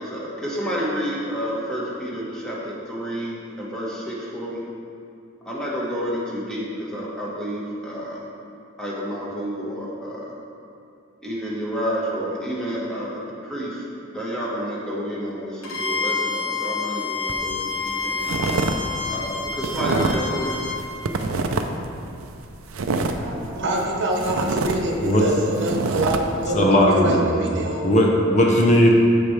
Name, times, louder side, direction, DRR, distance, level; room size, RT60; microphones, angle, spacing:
voice 1, 0.0-4.6 5.4-8.2 8.8-10.3 11.2-13.8 14.1-18.3 19.1-20.6, equal, 5° left, -6 dB, 1.4 m, -30 dB
Bowed string instrument, 15.6-20.8, left 4 dB, 75° left, 1.2 m, -28 dB
Snow - Single Steps, 17.3-17.5 17.9-18.8 19.0-20.3 20.7-21.9 22.2-23.9 24.2-26.2, right 3 dB, 85° right, 0.5 m, -25 dB
voice 2, 23.2-28.2, right 1 dB, 60° right, 0 dB, 1.0 m, -25 dB
voice 3, 26.5-27.2 27.8-28.9, equal, 35° left, -1 dB, 0.8 m, -17 dB
13.0 x 4.4 x 3.3 m, 2.6 s
head